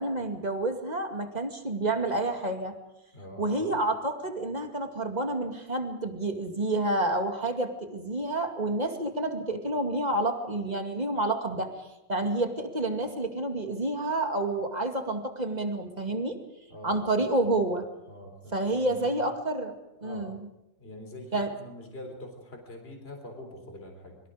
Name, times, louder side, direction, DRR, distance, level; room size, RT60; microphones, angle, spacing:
voice 1, 0.0-2.7 3.4-11.7 12.1-16.4 16.8-17.9 18.5-19.7 20.0-20.4 21.3-21.5, right 2 dB, 20° right, 4 dB, 2.4 m, -29 dB
voice 2, 3.1-3.8 16.7-17.3 17.5-17.7 18.1-19.2 20.0-20.3 20.8-24.2, left 1 dB, 30° left, 3 dB, 4.0 m, -44 dB
26.5 x 24.0 x 5.1 m, 0.93 s
omnidirectional pair, 2.0 m